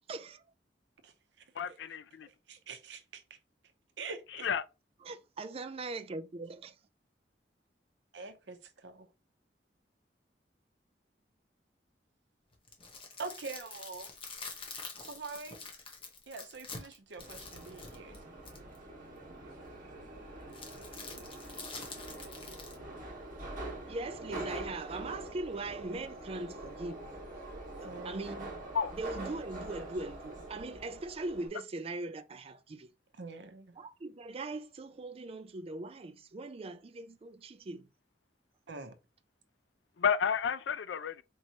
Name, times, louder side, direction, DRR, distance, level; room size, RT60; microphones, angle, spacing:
voice 1, 0.1-0.4 5.0-6.7 23.9-27.0 27.8-28.5 28.9-32.9 33.8-37.9, right 2 dB, 35° right, 0.4 m, -40 dB
voice 2, 1.6-2.3 4.4-4.6 28.7-28.9 40.0-41.2, left 7 dB, 80° left, 0.4 m, -31 dB
voice 3, 2.5-3.4 4.0-4.5 8.1-9.1 13.2-14.1 15.0-15.6 16.3-18.2 27.8-28.4 33.1-33.8 38.7-39.0, right 4 dB, 85° right, 0.7 m, -45 dB
sound 1, 12.5-18.8 20.5-22.8, left 4 dB, 30° left, 0.9 m, -46 dB
Subway metro underground, 17.2-31.5, right 2 dB, 50° right, 1.5 m, -44 dB
4.5 x 2.9 x 2.8 m
head